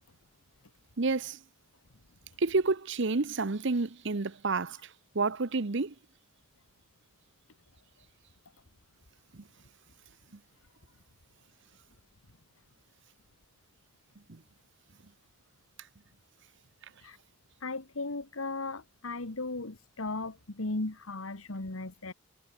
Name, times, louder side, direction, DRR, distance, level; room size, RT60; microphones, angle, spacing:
voice 1, 1.0-1.4 2.4-5.9 9.3-9.4 14.3-14.4, right 3 dB, 60° right, 0.9 m, -30 dB
voice 2, 17.6-22.1, left 2 dB, 75° left, 1.8 m, -36 dB
head